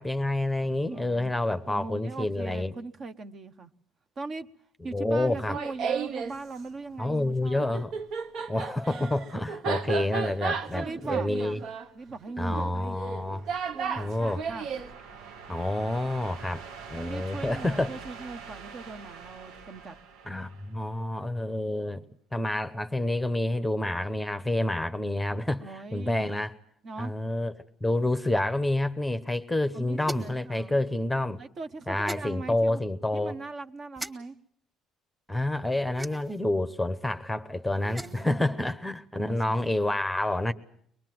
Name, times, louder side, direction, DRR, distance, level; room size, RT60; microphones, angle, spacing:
voice 1, 0.0-2.7 4.9-5.6 7.0-7.9 8.5-11.6 12.4-13.5 14.0-14.4 15.5-16.6 16.9-17.9 20.3-22.0 22.3-26.5 27.0-27.5 27.8-31.4 31.9-33.4 35.3-40.5, left 1 dB, 5° left, 0.9 m, -28 dB
voice 2, 0.6-3.7 4.2-4.5 4.8-7.8 10.7-11.6 11.9-13.0 13.7-14.7 17.0-20.0 25.6-26.3 26.8-27.2 29.7-30.8 31.4-32.8 33.1-34.4 37.9-38.7 39.1-39.7, right 3 dB, 35° right, 1.0 m, -40 dB
Laughter, 5.3-6.3 7.6-14.9, right 5 dB, 60° right, 1.3 m, -33 dB
sound 1, 12.8-21.3, right 5 dB, 85° right, 1.7 m, -46 dB
sound 2, 30.0-30.4 32.0-32.3 34.0-34.1 35.9-36.4 37.7-38.3, right 2 dB, 10° right, 1.7 m, -39 dB
24.0 x 21.0 x 7.7 m
cardioid pair, 130°, 0 cm